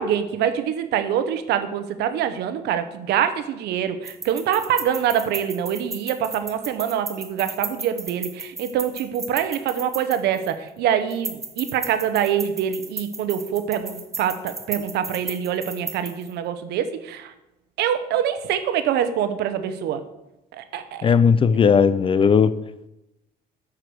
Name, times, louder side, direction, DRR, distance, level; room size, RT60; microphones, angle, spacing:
voice 1, 0.0-17.3 17.8-20.0 20.5-21.1, right 9 dB, 80° right, 10 dB, 0.9 m, -25 dB
sound 1, 4.0-10.7 11.1-16.3, right 3 dB, 20° right, 0.9 m, -35 dB
voice 2, 21.0-22.5, left 6 dB, 30° left, 14 dB, 0.4 m, -16 dB
8.1 x 4.9 x 6.1 m, 0.93 s
cardioid pair, 110°, 17 cm